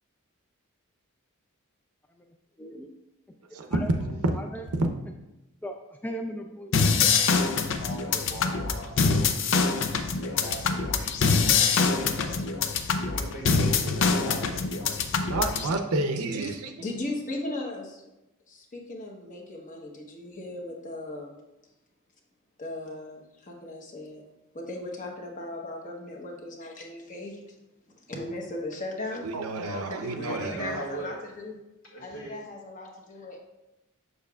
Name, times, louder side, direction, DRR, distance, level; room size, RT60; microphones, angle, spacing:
voice 1, 5.6-7.1 8.1-8.5, equal, 10° left, 3 dB, 0.3 m, -38 dB
sound 1, 6.7-15.7, left 5 dB, 60° left, 0.5 m, -24 dB
voice 2, 7.4-9.0 9.7-12.4 13.1-15.0 29.6-31.2 31.9-32.4, equal, 75° left, -4 dB, 2.0 m, -40 dB
voice 3, 15.3-16.7 29.1-30.8, right 2 dB, 85° right, 5 dB, 0.7 m, -30 dB
voice 4, 16.8-18.0 18.5-21.4 22.6-24.2 24.5-27.4 28.1-29.3 30.3-31.6 32.0-33.4, left 2 dB, 35° left, 0 dB, 1.1 m, -37 dB
6.7 x 6.6 x 2.4 m, 0.95 s
head